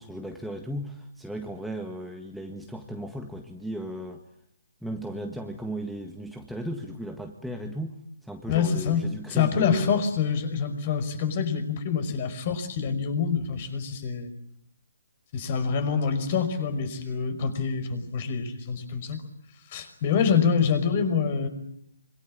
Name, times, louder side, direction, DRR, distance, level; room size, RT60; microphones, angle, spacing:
voice 1, 0.0-4.2 4.8-10.1, right 1 dB, ahead, 2 dB, 1.7 m, -36 dB
voice 2, 8.5-9.0 9.3-14.3 15.3-19.2 19.7-21.5, left 6 dB, 35° left, 10 dB, 5.4 m, -26 dB
26.5 x 24.5 x 8.8 m, 0.72 s
hypercardioid pair, 155°, 0 cm